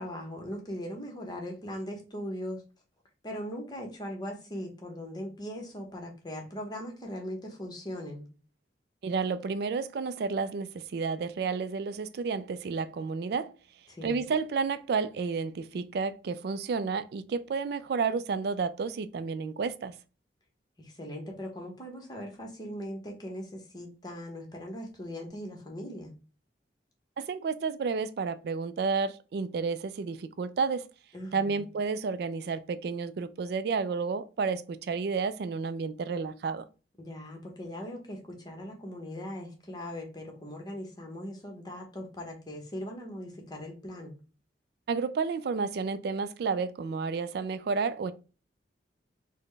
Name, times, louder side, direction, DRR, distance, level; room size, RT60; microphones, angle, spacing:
voice 1, 0.0-2.6 3.2-8.3 13.9-14.2 20.8-26.1 31.1-31.6 37.0-44.2, equal, 25° left, 0.9 m, -39 dB
voice 2, 9.0-13.5 14.0-19.9 27.2-30.8 31.3-36.6 44.9-48.1, right 5 dB, 60° right, 0.3 m, -31 dB
4.0 x 2.1 x 3.2 m
head